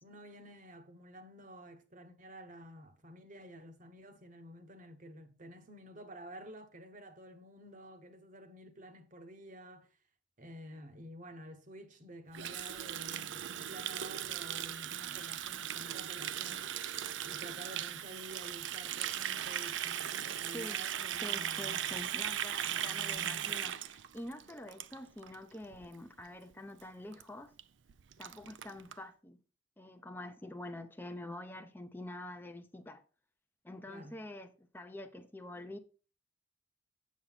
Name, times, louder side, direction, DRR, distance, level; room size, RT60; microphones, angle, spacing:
voice 1, 0.0-10.0 10.4-16.9 17.2-22.4 22.7-23.6 33.8-34.2, equal, 40° right, 1.1 m, -51 dB
Water tap faucet, 12.3-25.4 25.6-25.9 26.2-26.5 26.8-26.9 27.1-27.2 27.6-27.7 27.9-29.0, right 10 dB, 75° right, 0.5 m, -38 dB
voice 2, 21.2-27.5 28.2-29.4 29.8-33.0 33.6-35.8, left 1 dB, 10° left, 0.6 m, -46 dB
7.7 x 7.4 x 4.1 m
head